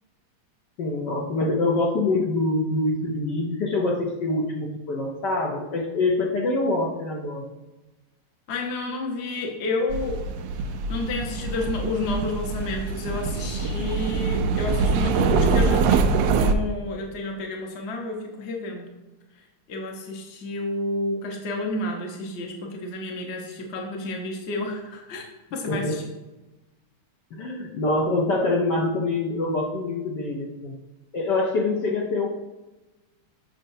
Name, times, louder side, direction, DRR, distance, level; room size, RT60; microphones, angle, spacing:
voice 1, 0.8-7.5 25.6-25.9 27.3-30.7 31.1-32.3, left 2 dB, 65° left, -1 dB, 1.3 m, -25 dB
voice 2, 8.5-10.2 10.9-18.9 19.7-25.2 25.5-26.1, left 2 dB, 40° left, 1 dB, 1.0 m, -30 dB
sound 1, 9.9-16.5, right 4 dB, 75° right, 1.1 m, -24 dB
7.6 x 6.3 x 2.7 m, 1.1 s
omnidirectional pair, 2.4 m